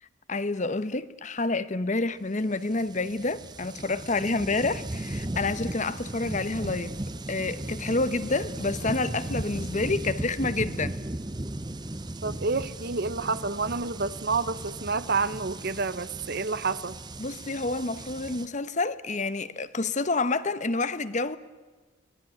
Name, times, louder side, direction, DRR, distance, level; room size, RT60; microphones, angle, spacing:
voice 1, 0.3-7.0 7.3-11.0 17.2-21.4, left 3 dB, 35° left, 1.0 m, -28 dB
sound 1, 2.4-18.5, right 1 dB, 20° right, 0.8 m, -36 dB
voice 2, 12.2-16.9, right 4 dB, 50° right, 0.9 m, -29 dB
23.5 x 18.5 x 9.6 m
head